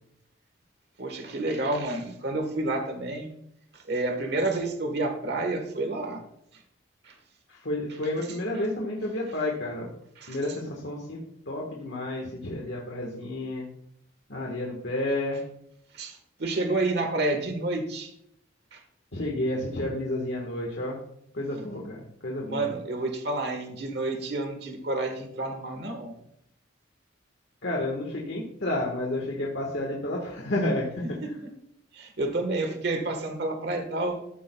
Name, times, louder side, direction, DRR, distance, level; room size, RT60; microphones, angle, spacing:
voice 1, 1.0-3.3 3.7-6.2 6.5-6.6 7.0-7.2 10.2-10.4 15.9-18.1 18.7-18.8 22.5-26.2 31.9-34.2, right 2 dB, 55° right, 5 dB, 1.4 m, -29 dB
voice 2, 7.5-9.9 10.3-11.2 11.4-13.7 14.3-15.4 19.1-21.0 21.3-22.7 27.6-31.3, left 1 dB, 65° left, -1 dB, 1.4 m, -31 dB
13.5 x 8.2 x 2.3 m, 0.75 s
head